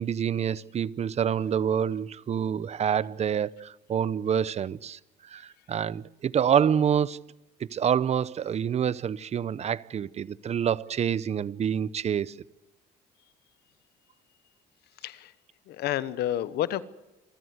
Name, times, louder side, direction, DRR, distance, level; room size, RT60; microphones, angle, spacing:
voice 1, 0.0-5.0 5.3-7.2 7.6-12.3, right 8 dB, 40° right, 0.7 m, -27 dB
voice 2, 15.0-15.3 15.7-16.8, left 12 dB, 75° left, 1.2 m, -29 dB
27.5 x 14.5 x 8.0 m
cardioid pair, 110°, 17 cm